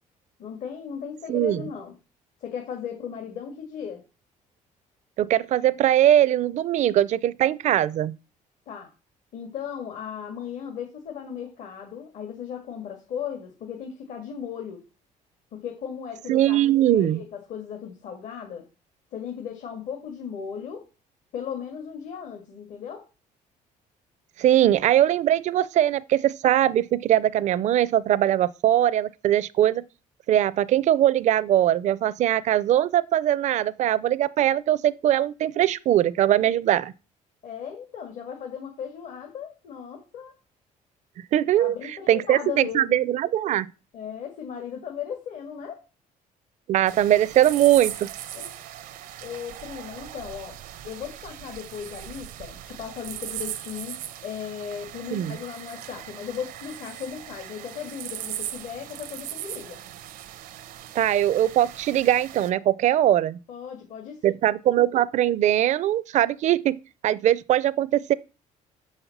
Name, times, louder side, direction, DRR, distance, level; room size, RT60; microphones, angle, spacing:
voice 1, 0.4-1.9 2.4-4.0 8.7-8.9 9.3-14.8 15.5-18.6 19.1-20.9 21.3-23.1 37.4-40.4 41.6-43.0 43.9-45.8 48.3-48.6 49.2-50.6 50.8-59.8 63.5-64.4, left 8 dB, 65° left, 1.9 m, -36 dB
voice 2, 1.3-1.7 5.2-8.1 16.3-17.2 24.4-29.8 30.3-36.9 41.3-41.7 42.1-43.7 46.7-48.1 55.1-55.4 60.9-63.4 64.2-66.8 67.0-68.1, right 12 dB, 60° right, 0.5 m, -21 dB
sound 1, 46.9-62.5, right 12 dB, 85° right, 0.8 m, -39 dB
6.5 x 5.6 x 7.1 m
cardioid pair, 125°, 14 cm